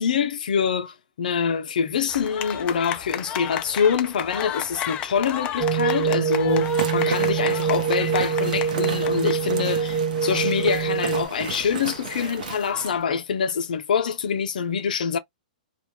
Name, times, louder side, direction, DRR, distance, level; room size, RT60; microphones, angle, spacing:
voice 1, 0.0-15.2, left 7 dB, 75° left, 0.6 m, -25 dB
sound 1, 2.1-13.0, left 10 dB, 25° left, 0.4 m, -35 dB
sound 2, 5.6-11.3, right 6 dB, 25° right, 0.6 m, -24 dB
sound 3, 6.5-13.0, right 5 dB, 70° right, 0.8 m, -34 dB
2.4 x 2.2 x 3.0 m
hypercardioid pair, 140°, 5 cm